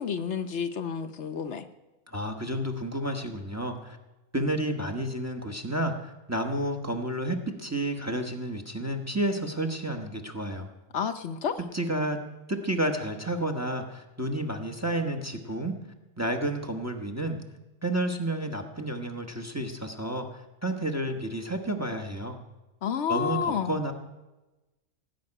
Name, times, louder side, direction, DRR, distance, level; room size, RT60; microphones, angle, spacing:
voice 1, 0.0-1.6 10.9-11.6 22.8-23.8, left 7 dB, 65° left, 8 dB, 1.0 m, -30 dB
voice 2, 2.1-4.0 4.3-10.7 11.7-12.2 12.5-15.7 16.2-17.4 17.8-22.4 23.1-23.9, right 1 dB, 15° right, 5 dB, 1.1 m, -31 dB
17.0 x 6.0 x 9.8 m, 1.1 s
omnidirectional pair, 1.3 m